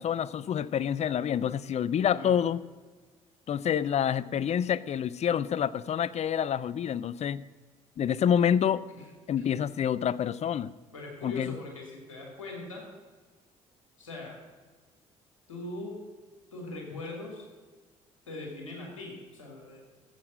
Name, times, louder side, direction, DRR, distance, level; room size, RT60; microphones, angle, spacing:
voice 1, 0.0-2.6 3.5-7.4 8.0-8.8 9.3-10.7 11.2-11.6, left 9 dB, 45° left, 18 dB, 0.5 m, -27 dB
voice 2, 2.1-2.4 9.0-9.1 9.4-9.6 10.9-12.9 14.0-14.4 15.5-16.0 16.5-17.5 18.3-19.9, left 2 dB, 90° left, -1 dB, 2.6 m, -41 dB
14.0 x 7.8 x 6.3 m, 1.4 s
hypercardioid pair, 50°, 16 cm